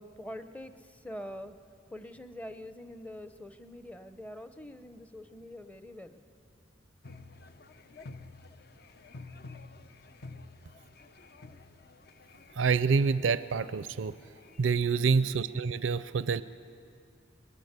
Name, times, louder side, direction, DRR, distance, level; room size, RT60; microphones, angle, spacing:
voice 1, 0.0-1.6 1.9-6.2 15.0-15.3, left 1 dB, 5° left, 9 dB, 0.7 m, -45 dB
sound 1, 7.0-15.4, left 3 dB, 55° left, 0.7 m, -51 dB
voice 2, 12.6-14.1 14.6-16.4, right 5 dB, 85° right, 14 dB, 0.5 m, -27 dB
22.0 x 20.0 x 8.1 m, 2.5 s
head